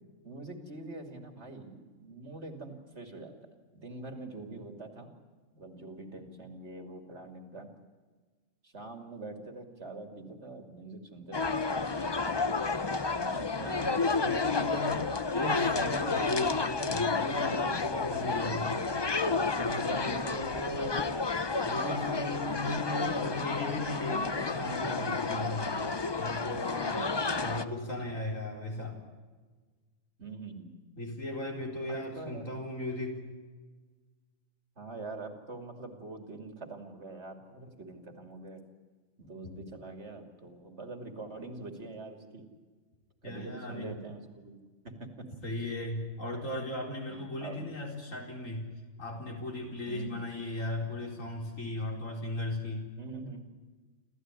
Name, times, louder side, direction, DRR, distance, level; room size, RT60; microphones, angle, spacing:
voice 1, 0.2-3.3 3.7-5.1 5.5-7.7 8.6-11.9 12.3-12.6 13.1-14.0 18.3-18.7 20.7-20.9 22.4-22.9 26.7-27.9 30.2-30.8 31.9-32.5 34.8-38.6 39.2-42.5 43.2-44.5 44.8-45.3 47.1-47.6 49.9-50.2 53.0-53.5, right 3 dB, 50° right, 5 dB, 3.0 m, -44 dB
sound 1, 11.3-27.6, left 3 dB, 25° left, 0.6 m, -31 dB
voice 2, 13.5-15.0 15.3-18.8 19.6-21.1 21.6-25.7 26.2-27.0 27.4-29.0 31.0-33.2 43.2-43.9 45.4-48.7 49.0-52.9, left 2 dB, 70° left, 1 dB, 4.8 m, -37 dB
27.5 x 14.5 x 9.8 m, 1.4 s
omnidirectional pair, 1.4 m